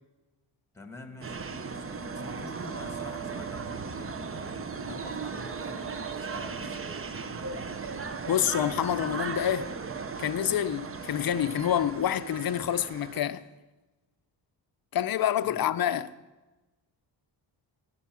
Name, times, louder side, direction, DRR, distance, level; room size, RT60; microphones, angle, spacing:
voice 1, 0.7-7.8 15.4-15.7, left 2 dB, 5° left, 1.5 m, -48 dB
sound 1, 1.2-13.2, right 5 dB, 30° right, 0.8 m, -37 dB
voice 2, 8.3-9.7 10.2-13.4 14.9-16.1, left 10 dB, 50° left, 0.6 m, -27 dB
12.5 x 9.9 x 6.2 m
cardioid pair, 115°, 47 cm